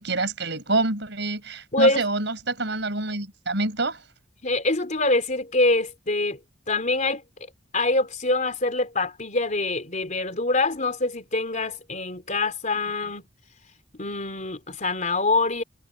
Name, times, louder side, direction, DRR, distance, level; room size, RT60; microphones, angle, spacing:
voice 1, 0.0-4.0, right 2 dB, 70° right, 5.5 m, -27 dB
voice 2, 1.7-2.0 4.4-6.4 6.7-7.2 7.7-13.2 13.9-15.6, left 2 dB, 40° left, 3.7 m, -24 dB
head